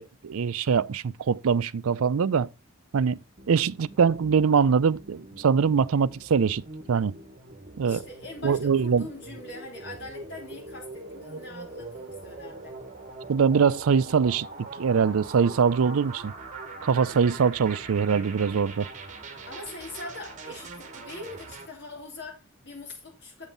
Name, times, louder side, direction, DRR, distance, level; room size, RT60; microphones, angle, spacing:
voice 1, 0.0-2.5 2.9-3.2 3.5-6.6 6.9-7.1 7.8-8.0 8.4-9.0 13.3-16.3 16.8-18.9, right 6 dB, 85° right, 0.4 m, -23 dB
sound 1, 3.4-21.7, right 3 dB, 35° right, 1.4 m, -42 dB
voice 2, 7.8-12.8 19.5-23.5, left 2 dB, 55° left, 3.4 m, -42 dB
8.0 x 7.2 x 3.8 m
head